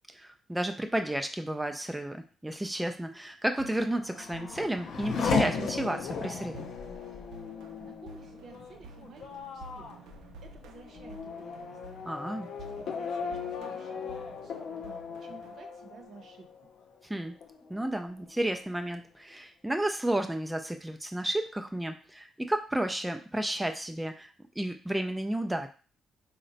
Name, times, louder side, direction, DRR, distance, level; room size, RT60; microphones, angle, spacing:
voice 1, 0.1-6.7 12.1-12.5 17.0-17.4 17.7-25.7, right 1 dB, 10° right, 6 dB, 0.3 m, -32 dB
sound 1, 3.6-15.6, right 4 dB, 90° right, 0.4 m, -51 dB
Race car auto racing / Accelerating revving vroom, 3.8-17.0 17.4-18.1, left 5 dB, 70° left, 0.5 m, -36 dB
voice 2, 7.8-9.9 10.4-11.8 12.6-16.5, right 4 dB, 65° right, 4 dB, 0.7 m, -53 dB
3.9 x 2.1 x 3.9 m, 0.37 s
cardioid pair, 90°, 0 cm